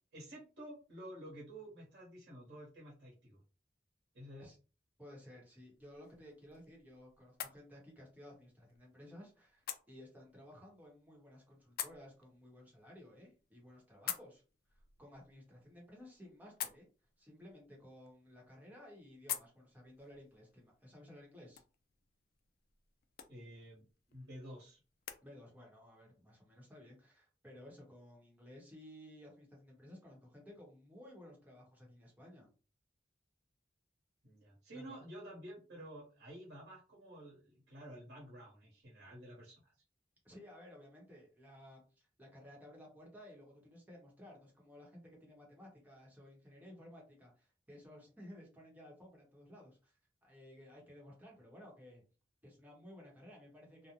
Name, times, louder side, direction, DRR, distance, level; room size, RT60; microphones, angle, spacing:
voice 1, 0.1-3.4 4.1-4.5 23.3-23.8 24.1-24.8 34.2-39.7, right 1 dB, 70° right, -6 dB, 1.0 m, -51 dB
voice 2, 5.0-14.4 14.7-16.9 17.2-21.6 25.2-32.5 34.7-35.0 40.2-52.0 52.4-53.9, left 1 dB, 10° right, -2 dB, 0.9 m, -56 dB
sound 1, 5.7-25.2, left 10 dB, 60° left, 0.3 m, -50 dB
2.4 x 2.1 x 2.8 m, 0.34 s
head